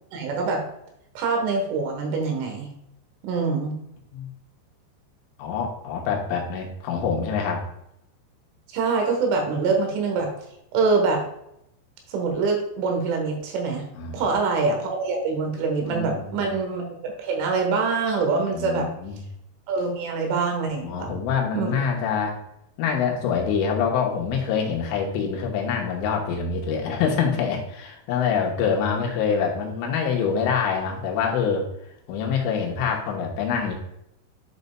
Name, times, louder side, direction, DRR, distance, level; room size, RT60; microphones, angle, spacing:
voice 1, 0.1-0.7 1.2-2.7 3.2-3.8 8.7-10.3 10.7-11.3 12.1-13.9 14.1-18.9 19.7-21.1 21.5-21.7, right 4 dB, 85° right, 2 dB, 3.8 m, -24 dB
voice 2, 5.4-7.7 14.0-14.3 15.9-16.3 18.5-19.2 20.8-22.4 22.8-31.7 32.1-33.7, left 6 dB, 90° left, 0 dB, 3.6 m, -25 dB
10.5 x 5.3 x 2.2 m, 0.79 s
omnidirectional pair, 5.4 m